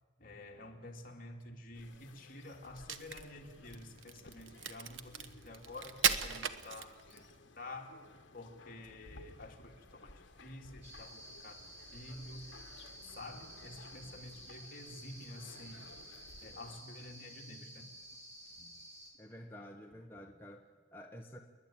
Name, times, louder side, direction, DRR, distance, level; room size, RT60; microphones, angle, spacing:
voice 1, 0.2-5.1 5.4-7.3 7.5-7.9 8.3-12.5 13.0-15.9 16.4-18.2 18.6-18.7, left 2 dB, 45° left, 0 dB, 2.8 m, -50 dB
sound 1, 1.7-16.8, left 2 dB, 70° left, 1.5 m, -58 dB
Crack, 2.7-7.3, right 7 dB, 80° right, 1.1 m, -36 dB
sound 2, 10.8-19.1, right 1 dB, 35° right, 4.2 m, -53 dB
voice 2, 19.2-21.4, equal, 10° left, 0 dB, 1.1 m, -50 dB
29.5 x 11.0 x 8.9 m, 1.4 s
head